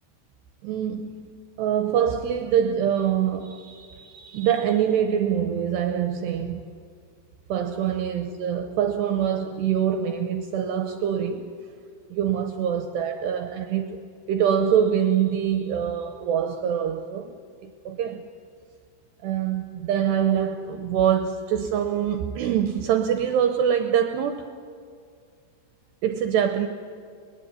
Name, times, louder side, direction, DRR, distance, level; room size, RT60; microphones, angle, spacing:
voice 1, 0.6-1.3 1.6-6.6 7.5-11.6 12.1-14.0 14.3-17.4 17.6-18.3 19.2-24.5 26.0-26.7, right 9 dB, 75° right, 2.6 m, -24 dB
23.0 x 20.5 x 9.6 m
omnidirectional pair, 5.8 m